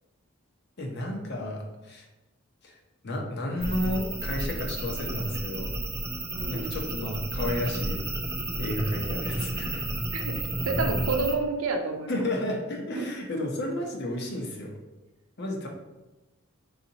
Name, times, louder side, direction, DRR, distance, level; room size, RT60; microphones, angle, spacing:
voice 1, 0.8-2.1 2.6-2.8 3.0-5.7 6.5-8.0 8.6-9.8 12.1-14.8 15.4-15.7, left 1 dB, 50° left, 1 dB, 0.8 m, -32 dB
sound 1, 3.6-11.4, right 2 dB, 15° right, 0.4 m, -31 dB
voice 2, 6.3-6.8 10.1-12.2 12.9-13.1, right 3 dB, 80° right, 4 dB, 0.6 m, -30 dB
4.1 x 4.0 x 2.8 m, 1.1 s
head